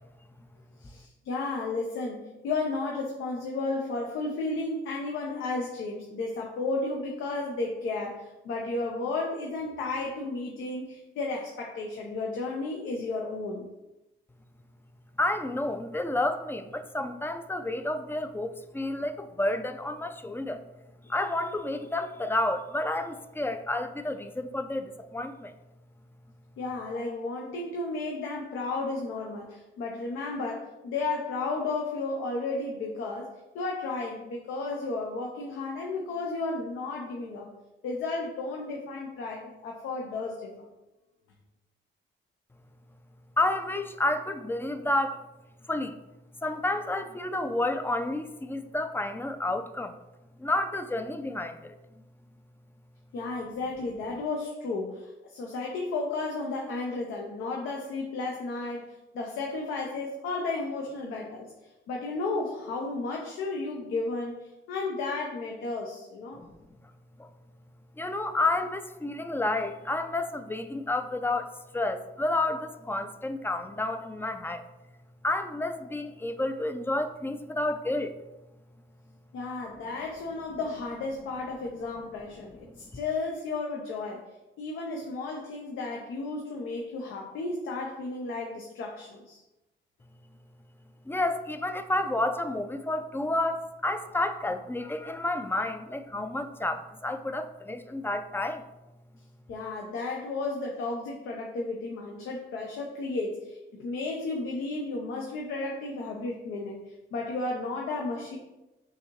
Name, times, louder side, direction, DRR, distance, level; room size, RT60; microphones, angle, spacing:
voice 1, 0.8-13.7 26.6-33.3 33.5-37.5 37.8-40.7 53.1-61.5 61.9-66.4 79.3-84.2 84.6-89.4 99.5-106.8 107.1-108.4, left 3 dB, 85° left, 0 dB, 0.7 m, -33 dB
voice 2, 15.2-20.6 21.1-25.5 43.4-45.2 45.7-46.0 46.4-50.0 50.4-51.7 66.4-66.5 67.2-67.3 68.0-74.6 75.2-78.1 91.1-98.6, left 2 dB, 10° left, 9 dB, 0.3 m, -30 dB
6.3 x 2.7 x 3.0 m, 0.99 s
cardioid pair, 90°, 20 cm